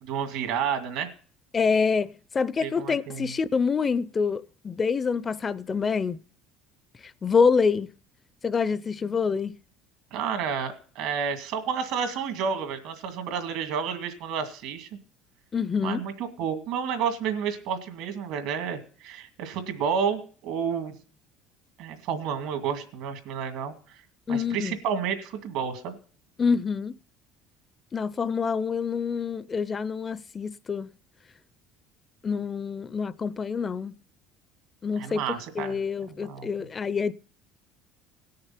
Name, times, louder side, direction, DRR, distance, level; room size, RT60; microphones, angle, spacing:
voice 1, 0.0-1.1 2.6-3.3 10.1-14.9 15.8-20.9 21.8-24.0 24.3-26.0 35.0-35.8 36.1-36.5, right 7 dB, 75° right, 2.2 m, -30 dB
voice 2, 1.5-6.2 7.2-7.9 8.4-9.5 15.5-16.0 24.3-24.8 26.4-27.0 27.9-30.9 32.2-33.9 34.8-37.1, left 5 dB, 30° left, 0.5 m, -26 dB
17.5 x 6.6 x 5.8 m
supercardioid pair, 110°, 0 cm